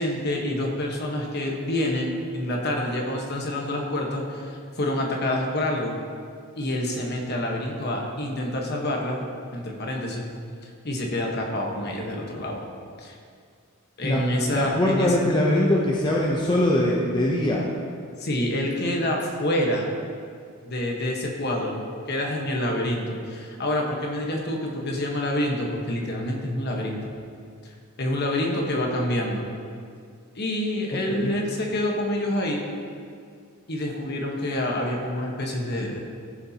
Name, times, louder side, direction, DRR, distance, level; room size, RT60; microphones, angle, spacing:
voice 1, 0.0-5.9 6.5-9.3 9.5-10.2 10.6-12.6 13.0-13.2 14.0-15.2 18.2-19.9 20.6-21.8 22.1-27.1 28.0-29.4 30.3-32.6 33.7-36.0, left 1 dB, 45° left, 0 dB, 1.3 m, -27 dB
voice 2, 14.5-17.6 30.9-31.3, left 1 dB, 20° left, -3 dB, 0.7 m, -22 dB
14.5 x 7.1 x 2.9 m, 2.2 s
head